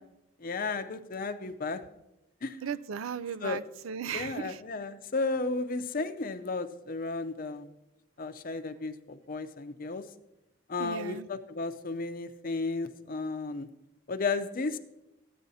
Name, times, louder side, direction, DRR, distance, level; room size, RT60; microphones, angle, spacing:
voice 1, 0.4-1.8 2.4-2.6 3.4-3.6 4.0-7.7 8.2-10.0 10.7-13.7 14.1-14.8, left 3 dB, 45° left, 10 dB, 0.6 m, -33 dB
voice 2, 2.6-4.6 10.8-11.3, right 7 dB, 85° right, 17 dB, 0.4 m, -36 dB
14.5 x 9.3 x 2.7 m, 0.92 s
head